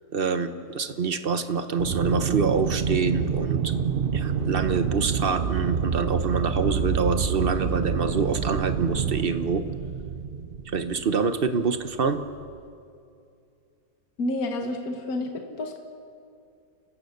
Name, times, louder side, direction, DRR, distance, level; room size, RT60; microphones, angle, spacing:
voice 1, 0.1-3.7 4.1-9.6 10.7-12.2, right 5 dB, 40° right, 9 dB, 1.1 m, -26 dB
Aircraft, 1.8-11.2, right 7 dB, 85° right, 0.5 m, -27 dB
Bass guitar, 6.3-12.6, equal, 15° left, 5.4 m, -43 dB
voice 2, 14.2-15.8, left 2 dB, 55° left, 4 dB, 2.0 m, -29 dB
30.0 x 16.0 x 6.7 m, 2.5 s
omnidirectional pair, 1.9 m